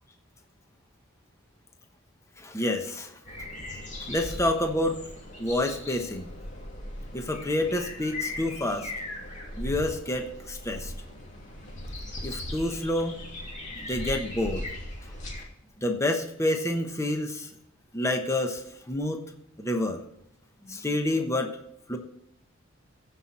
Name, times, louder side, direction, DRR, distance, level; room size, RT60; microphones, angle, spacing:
voice 1, 2.4-3.2 4.1-5.0 5.4-6.3 7.1-8.9 9.6-10.9 12.2-13.2 13.8-14.6 15.8-17.5 17.9-19.2 19.6-20.0 20.6-21.5 21.9-22.0, left 1 dB, 15° left, 4 dB, 1.0 m, -28 dB
sound 1, 3.2-15.4, left 1 dB, 35° left, 2.8 m, -38 dB
14.5 x 5.7 x 4.3 m, 0.77 s
head